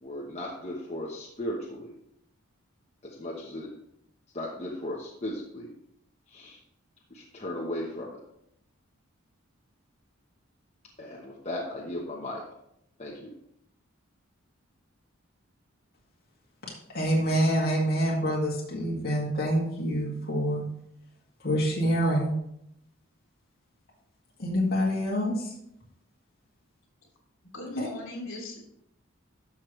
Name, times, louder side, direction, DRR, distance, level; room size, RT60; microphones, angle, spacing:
voice 1, 0.0-1.9 3.0-3.7 4.3-5.7 6.3-6.6 7.1-8.2 11.0-12.4 13.0-13.3, left 1 dB, 30° left, -3 dB, 1.0 m, -36 dB
voice 2, 16.9-20.6 21.4-22.3 24.4-25.5 27.8-27.9, equal, 45° left, -4 dB, 1.9 m, -26 dB
voice 3, 27.5-28.6, left 1 dB, 65° left, -1 dB, 2.8 m, -37 dB
11.5 x 6.2 x 3.2 m, 0.77 s
head